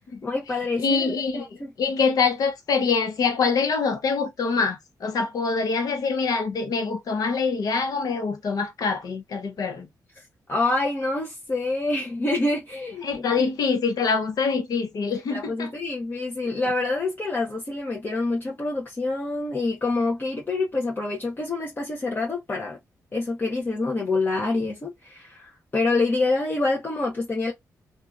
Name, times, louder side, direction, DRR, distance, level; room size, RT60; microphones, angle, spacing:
voice 1, 0.2-1.7 10.2-10.3 10.5-13.8 15.1-22.8 23.1-27.5, left 2 dB, 30° left, 0.8 m, -27 dB
voice 2, 0.8-1.5 1.8-9.9 13.0-15.7, left 5 dB, 70° left, 0.9 m, -25 dB
2.7 x 2.4 x 2.4 m
cardioid pair, 80°, 7 cm